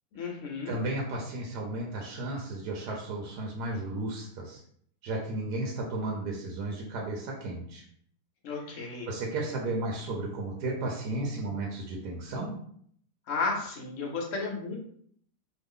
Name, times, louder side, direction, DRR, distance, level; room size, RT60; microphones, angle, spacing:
voice 1, 0.1-0.8 8.4-9.1 13.3-14.8, left 4 dB, 60° left, 0 dB, 0.9 m, -33 dB
voice 2, 0.7-4.6 5.0-7.8 8.7-12.6, right 2 dB, 75° right, -1 dB, 1.1 m, -34 dB
3.2 x 2.0 x 3.5 m, 0.63 s
omnidirectional pair, 1.9 m